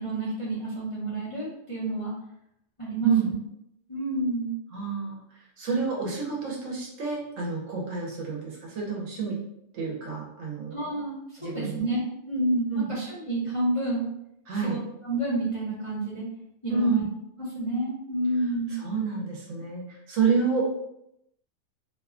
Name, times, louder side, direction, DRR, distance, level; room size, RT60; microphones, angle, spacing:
voice 1, 0.0-2.1 2.8-3.3 3.9-4.5 10.7-14.1 14.5-14.8 15.0-16.3 16.6-17.1 17.5-18.8, right 1 dB, 30° left, -10 dB, 0.6 m, -29 dB
voice 2, 4.7-5.2 5.6-9.4 9.7-10.8 11.4-11.9 12.7-12.9 14.5-14.8 16.7-17.1 18.7-20.8, right 5 dB, 70° right, -2 dB, 1.0 m, -28 dB
2.7 x 2.2 x 2.4 m, 0.79 s
omnidirectional pair, 1.5 m